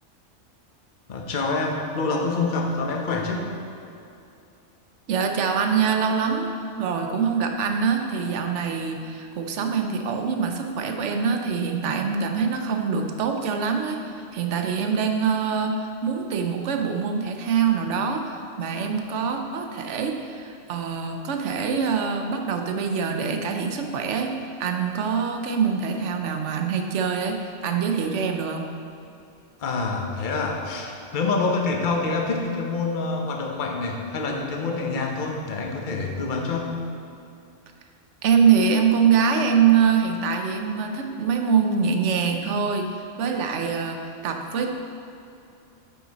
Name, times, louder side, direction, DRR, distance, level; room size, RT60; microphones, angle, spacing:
voice 1, 1.1-3.5 29.6-36.8, left 3 dB, 45° left, 1 dB, 1.0 m, -26 dB
voice 2, 5.1-15.8 16.0-28.7 38.2-42.9 43.2-44.7, right 6 dB, 70° right, 4 dB, 1.0 m, -24 dB
9.6 x 5.7 x 4.1 m, 2.7 s
omnidirectional pair, 1.3 m